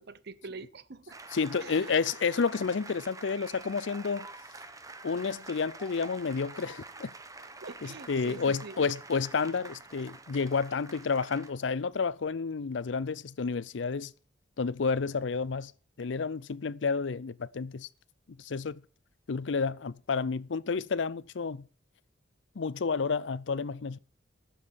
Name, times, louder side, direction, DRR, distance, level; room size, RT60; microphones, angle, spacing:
voice 1, 0.0-1.2 1.6-1.9 7.6-8.9, right 3 dB, 60° right, 0.8 m, -45 dB
sound 1, 1.1-11.5, right 3 dB, 20° right, 0.9 m, -47 dB
voice 2, 1.3-4.3 5.0-7.1 7.8-14.1 14.6-15.7 16.0-17.9 18.4-18.8 19.3-21.7 22.6-24.0, left 5 dB, 70° left, 0.5 m, -30 dB
12.0 x 7.1 x 7.2 m
head